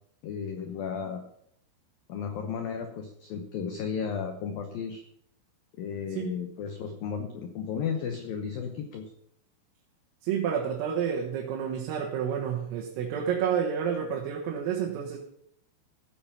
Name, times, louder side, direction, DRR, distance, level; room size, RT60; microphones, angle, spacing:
voice 1, 0.2-1.2 2.1-5.0 5.8-9.1, left 6 dB, 90° left, 5 dB, 2.0 m, -34 dB
voice 2, 10.2-15.2, right 8 dB, 80° right, -1 dB, 4.1 m, -29 dB
16.0 x 8.1 x 5.8 m, 0.71 s
omnidirectional pair, 5.9 m